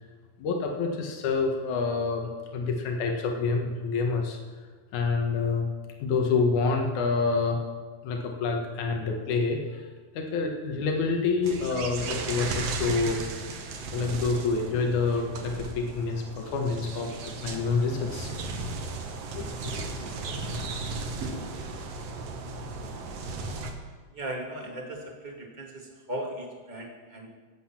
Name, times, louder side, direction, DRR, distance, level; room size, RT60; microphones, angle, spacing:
voice 1, 0.4-4.4 4.9-5.7 6.0-7.6 8.0-9.9 10.1-13.3 13.9-18.3 19.4-19.8, left 4 dB, 75° left, 2 dB, 2.8 m, -27 dB
sound 1, 11.4-23.7, right 3 dB, 60° right, 2.1 m, -35 dB
voice 2, 24.1-27.3, right 1 dB, 20° right, 0 dB, 1.5 m, -37 dB
17.0 x 8.1 x 5.9 m, 1.4 s
omnidirectional pair, 3.6 m